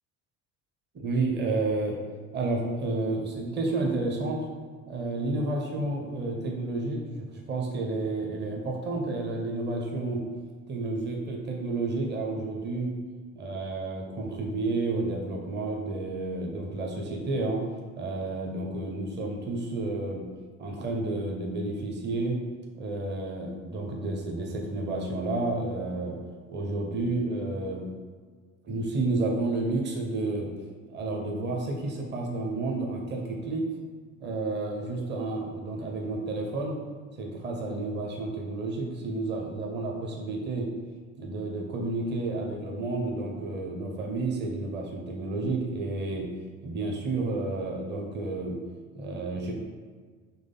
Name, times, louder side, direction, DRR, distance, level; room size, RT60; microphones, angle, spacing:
voice 1, 0.9-2.0 2.3-4.5 4.9-10.2 10.7-12.9 13.3-17.6 17.9-20.2 20.6-22.4 22.7-26.2 26.5-27.8 28.7-30.5 30.9-33.6 34.2-36.8 37.2-40.7 41.1-46.3 46.6-48.6 48.9-49.5, right 2 dB, 25° right, 0 dB, 0.9 m, -31 dB
4.0 x 3.1 x 4.0 m, 1.6 s
figure-of-eight pair, 60°, 39 cm